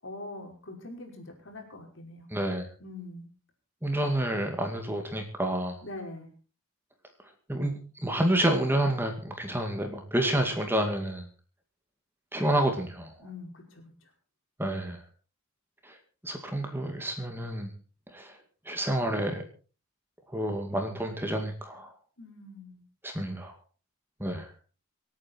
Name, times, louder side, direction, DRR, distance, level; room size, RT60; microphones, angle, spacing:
voice 1, 0.0-2.3 2.8-3.3 5.8-6.3 13.2-14.1 22.2-22.8, left 2 dB, 60° left, 2 dB, 5.3 m, -43 dB
voice 2, 2.3-2.7 3.8-5.8 7.5-11.3 12.3-13.1 14.6-15.0 16.2-17.7 18.1-18.3 18.7-19.4 20.3-21.9 23.0-23.5 24.2-24.5, right 1 dB, 10° right, 4 dB, 2.2 m, -29 dB
26.0 x 9.1 x 4.5 m, 0.37 s
head